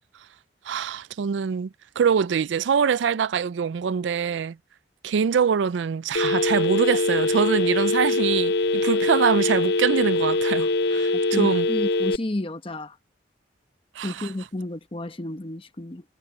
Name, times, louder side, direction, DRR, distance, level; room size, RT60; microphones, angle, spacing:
voice 1, 0.6-4.6 5.0-11.7 14.0-14.3, right 6 dB, 80° right, 0.4 m, -24 dB
Telephone, 6.2-12.2, left 2 dB, 55° left, 0.5 m, -23 dB
voice 2, 11.1-13.0 14.0-16.0, left 1 dB, 30° left, 1.0 m, -32 dB
head